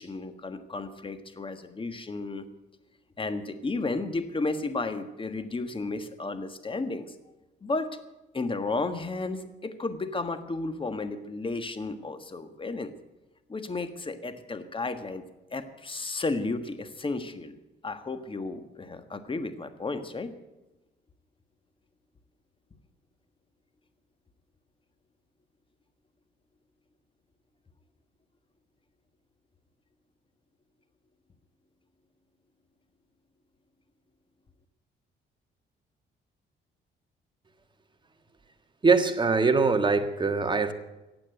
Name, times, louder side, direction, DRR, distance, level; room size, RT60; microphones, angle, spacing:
voice 1, 0.0-2.4 3.2-7.1 7.6-8.0 8.3-12.9 13.5-15.2 15.5-17.6 17.8-20.3, left 3 dB, 25° left, 10 dB, 1.5 m, -33 dB
voice 2, 38.8-40.7, right 4 dB, 25° right, 7 dB, 1.5 m, -22 dB
15.5 x 8.7 x 9.0 m, 1.0 s
cardioid pair, 90°, 20 cm